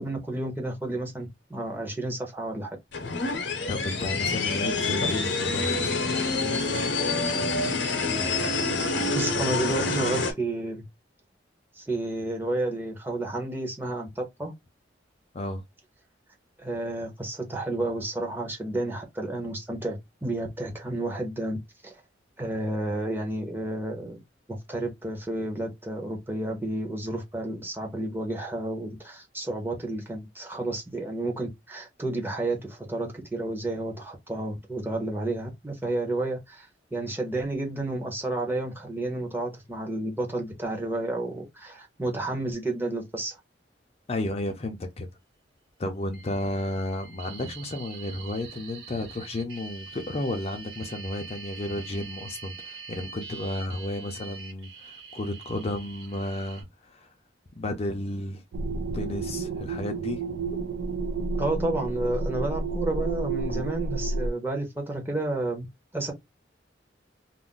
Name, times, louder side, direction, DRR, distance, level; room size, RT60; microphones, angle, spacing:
voice 1, 0.0-2.8 9.0-10.8 11.8-14.5 16.6-21.6 21.8-21.9 22.4-24.2 24.5-43.4 61.4-65.7 65.9-66.1, right 2 dB, 10° right, 0.8 m, -31 dB
sound 1, 2.9-10.3, left 3 dB, 70° left, 0.7 m, -27 dB
voice 2, 3.7-6.0 15.3-15.6 44.1-45.2 45.8-57.1 57.5-58.4 58.9-60.2 63.5-63.6, left 1 dB, 35° left, 0.5 m, -32 dB
sound 2, 46.1-56.6, right 5 dB, 70° right, 1.1 m, -44 dB
sound 3, 58.5-64.3, right 3 dB, 90° right, 0.3 m, -30 dB
2.4 x 2.1 x 3.7 m
head